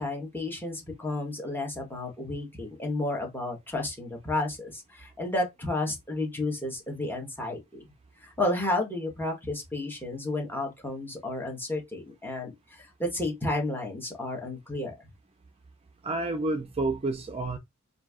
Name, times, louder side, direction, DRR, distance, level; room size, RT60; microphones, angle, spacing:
voice 1, 0.0-7.8 8.2-14.9, left 2 dB, 10° left, 1.4 m, -32 dB
voice 2, 16.0-17.6, right 2 dB, 25° right, 0.4 m, -29 dB
4.3 x 2.7 x 3.6 m
head